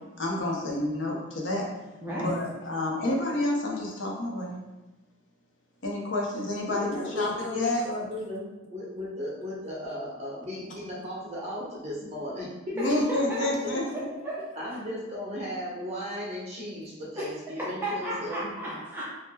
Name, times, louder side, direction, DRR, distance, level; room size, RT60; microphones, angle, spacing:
voice 1, 0.2-1.7 2.2-4.6 5.8-8.0 12.7-14.1, left 1 dB, 65° left, -2 dB, 0.6 m, -29 dB
voice 2, 6.7-13.0 14.6-18.5, equal, 30° right, -6 dB, 0.8 m, -36 dB
voice 3, 12.8-13.5 13.9-14.8 17.2-17.3 17.6-19.0, equal, 10° right, -8 dB, 0.4 m, -34 dB
2.7 x 2.0 x 3.6 m, 1.1 s
head